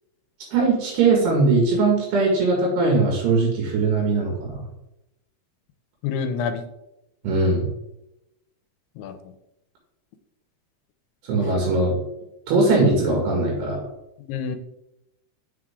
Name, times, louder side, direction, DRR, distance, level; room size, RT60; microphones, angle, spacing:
voice 1, 0.5-4.6 7.2-7.7 11.3-12.0 12.5-13.8, right 3 dB, 90° right, -1 dB, 3.9 m, -20 dB
voice 2, 6.0-6.7 7.4-7.5 9.0-9.3 14.2-14.6, left 6 dB, 85° left, 8 dB, 2.8 m, -28 dB
8.7 x 6.4 x 3.7 m, 0.87 s
omnidirectional pair, 4.5 m